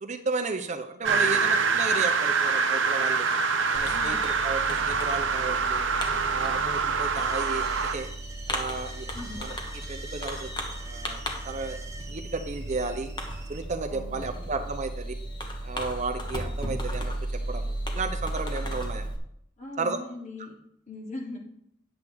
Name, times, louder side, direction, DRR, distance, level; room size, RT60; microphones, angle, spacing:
voice 1, 0.0-3.3 3.7-5.8 6.3-7.7 7.9-8.1 8.5-9.1 9.4-9.5 9.9-10.5 10.8-11.8 12.1-13.1 13.5-15.1 15.6-19.1 19.8-20.0, right 3 dB, 40° right, 7 dB, 0.7 m, -33 dB
sound 1, 1.0-7.9, right 5 dB, 75° right, 0.9 m, -25 dB
Fireworks, 3.7-19.2, right 1 dB, 25° left, 1.4 m, -35 dB
voice 2, 3.9-4.2 9.1-9.4 13.9-14.5 19.6-20.5 20.9-21.4, left 2 dB, 40° left, -2 dB, 2.6 m, -40 dB
sound 2, 7.2-13.6, right 3 dB, 15° right, 1.0 m, -45 dB
10.0 x 8.0 x 3.6 m, 0.72 s
head